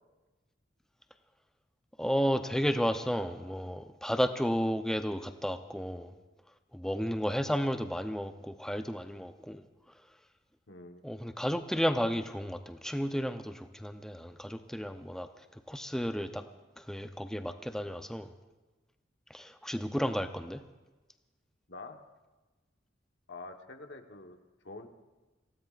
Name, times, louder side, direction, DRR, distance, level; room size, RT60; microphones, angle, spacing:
voice 1, 2.0-6.1 6.7-9.6 11.0-15.3 15.7-16.4 16.8-18.3 19.3-20.6, equal, 5° left, 8 dB, 0.6 m, -32 dB
voice 2, 10.7-11.1 21.7-22.0 23.3-24.4 24.6-24.9, left 3 dB, 75° left, 4 dB, 1.2 m, -46 dB
26.5 x 17.5 x 2.5 m, 1.2 s
head